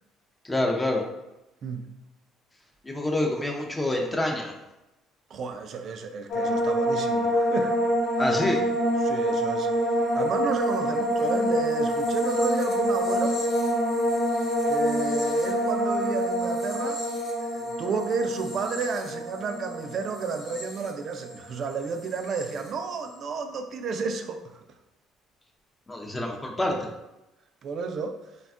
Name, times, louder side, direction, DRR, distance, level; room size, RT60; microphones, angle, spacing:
voice 1, 0.4-1.0 2.8-4.5 8.2-8.6 25.9-26.9, left 1 dB, 15° left, 0 dB, 0.4 m, -27 dB
voice 2, 1.6-1.9 5.3-7.8 9.0-9.7 10.1-13.4 14.7-17.0 17.4-24.4 27.6-28.2, right 5 dB, 55° right, 6 dB, 0.3 m, -31 dB
sound 1, 6.3-21.5 21.8-22.4, equal, 60° left, 0.8 m, -26 dB
3.3 x 2.2 x 2.4 m, 0.97 s
supercardioid pair, 85°, 0 cm